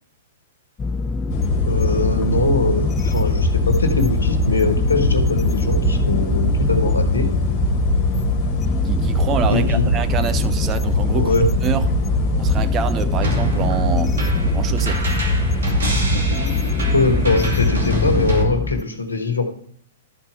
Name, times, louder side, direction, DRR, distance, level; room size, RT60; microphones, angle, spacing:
sound 1, 0.8-18.8, left 3 dB, 20° left, 0.4 m, -25 dB
sound 2, 1.3-18.4, left 1 dB, 45° left, 1.8 m, -22 dB
voice 1, 1.6-7.3 9.5-9.8 11.1-11.5 16.9-19.4, left 3 dB, 85° left, 1.4 m, -22 dB
voice 2, 8.8-11.3 11.6-11.9 12.4-14.2 14.5-15.0, right 8 dB, 25° right, 0.6 m, -26 dB
sound 3, 13.2-18.4, equal, 70° right, 2.3 m, -27 dB
12.0 x 4.4 x 4.8 m
figure-of-eight pair, 110°, 0 cm